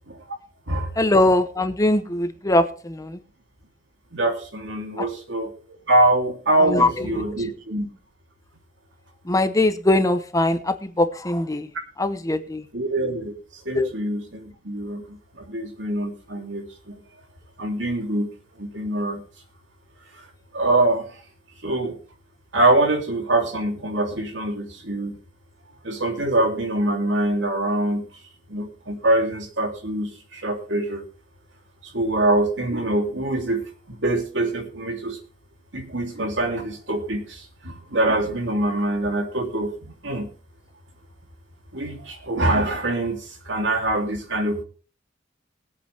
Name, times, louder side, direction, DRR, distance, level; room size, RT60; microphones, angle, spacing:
voice 1, 1.0-3.2 5.0-5.1 6.6-7.2 9.3-11.7 12.0-12.6 13.7-13.9, left 1 dB, 20° left, 9 dB, 0.9 m, -21 dB
voice 2, 4.1-5.5 5.9-7.9 12.7-13.3 13.6-17.0 17.6-18.3 18.6-19.2 20.5-21.1 21.6-22.0 22.5-25.1 25.8-28.0 28.5-31.0 31.9-33.6 33.9-35.2 35.7-39.7 40.0-40.3 41.7-44.6, right 1 dB, 70° right, 3 dB, 2.9 m, -24 dB
20.5 x 8.4 x 3.4 m, 0.38 s
head